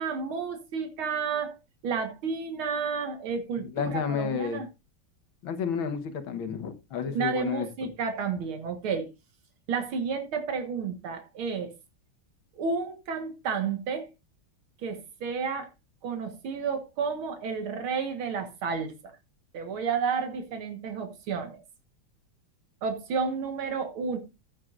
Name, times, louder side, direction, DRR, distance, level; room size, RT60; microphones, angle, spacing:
voice 1, 0.0-1.6 1.8-4.7 7.1-9.1 9.7-11.7 12.6-14.1 14.8-15.7 16.0-18.9 19.5-21.6 22.8-24.2, right 5 dB, 85° right, 2.3 m, -31 dB
voice 2, 3.6-4.6 5.4-7.7, left 7 dB, 75° left, 2.1 m, -31 dB
15.5 x 7.5 x 2.5 m
omnidirectional pair, 2.2 m